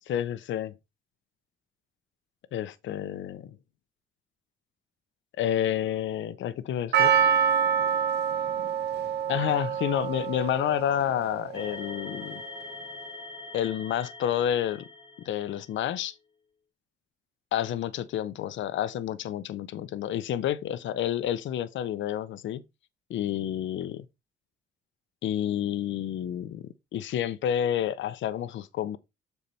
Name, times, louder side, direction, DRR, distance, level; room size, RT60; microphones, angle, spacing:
voice 1, 0.1-0.7 2.5-3.5 5.4-7.2 9.3-12.4 13.5-14.8 15.2-16.1 17.5-22.6 23.1-24.0 25.2-26.6 26.9-29.0, left 11 dB, 70° left, 0.8 m, -29 dB
Percussion, 6.9-11.3 11.5-11.6, right 7 dB, 55° right, 1.3 m, -26 dB
sound 1, 11.5-15.8, left 2 dB, 25° left, 1.3 m, -43 dB
6.9 x 4.5 x 4.2 m
cardioid pair, 90°, 20 cm